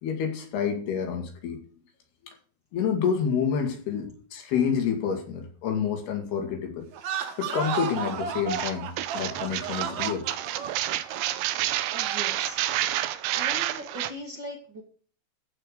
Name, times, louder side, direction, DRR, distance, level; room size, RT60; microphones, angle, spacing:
voice 1, 0.0-1.6 2.7-6.9 7.4-10.3, left 7 dB, 80° left, 4 dB, 4.1 m, -28 dB
sound 1, 6.9-12.4, right 8 dB, 65° right, 1.9 m, -34 dB
sound 2, 8.5-14.1, right 13 dB, 90° right, 2.8 m, -29 dB
voice 2, 11.9-12.7 13.3-14.8, equal, 35° right, 0 dB, 2.1 m, -39 dB
14.5 x 5.0 x 6.7 m, 0.43 s
omnidirectional pair, 4.5 m